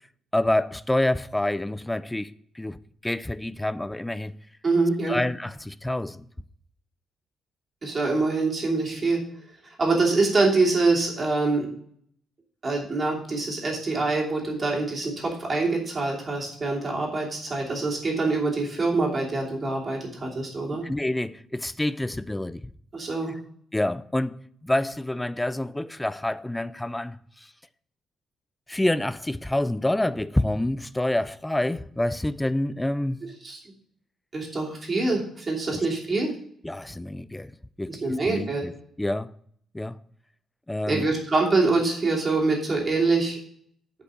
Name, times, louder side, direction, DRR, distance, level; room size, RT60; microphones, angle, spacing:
voice 1, 0.3-4.3 5.1-6.3 20.7-22.6 23.7-24.4 24.6-27.5 28.7-33.2 36.6-37.5 37.8-38.7 39.0-39.3 39.7-40.0 40.7-41.1, left 1 dB, 5° left, 0.3 m, -27 dB
voice 2, 4.6-5.2 7.8-9.2 9.8-11.7 12.6-20.8 22.9-23.3 33.4-33.6 34.3-36.3 37.9-38.7 40.9-43.4, right 3 dB, 25° right, 2.9 m, -25 dB
8.3 x 5.4 x 6.4 m
cardioid pair, 135°, 0 cm